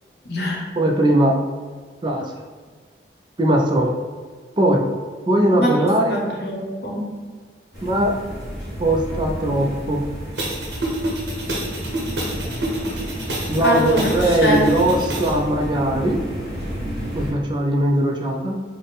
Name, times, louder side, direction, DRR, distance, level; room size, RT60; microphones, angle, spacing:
voice 1, 0.2-0.6 5.6-5.8 6.1-7.0 13.6-14.9, equal, 60° left, -2 dB, 0.8 m, -23 dB
voice 2, 0.8-1.4 2.0-2.3 3.4-3.9 4.6-4.8 5.3-6.2 7.8-8.2 8.8-10.0 13.5-16.2 17.1-18.6, right 1 dB, 25° right, 1 dB, 0.3 m, -19 dB
sound 1, 7.7-17.3, equal, ahead, 1.1 m, -31 dB
sound 2, 10.4-15.4, right 1 dB, 65° right, 0.7 m, -28 dB
3.4 x 2.0 x 4.0 m, 1.5 s
head